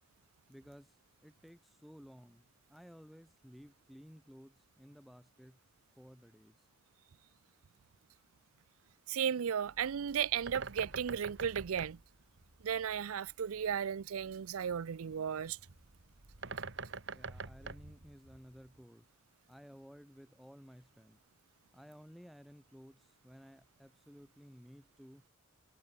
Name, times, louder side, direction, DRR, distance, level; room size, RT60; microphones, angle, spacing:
voice 1, 0.5-1.0 1.2-5.6 6.0-6.6 17.1-19.1 19.5-21.2 21.7-25.2, equal, ahead, 3.7 m, -56 dB
voice 2, 9.1-12.0 12.6-15.6, right 8 dB, 80° right, 0.5 m, -35 dB
Bird, 9.6-18.8, right 4 dB, 55° right, 2.0 m, -47 dB
head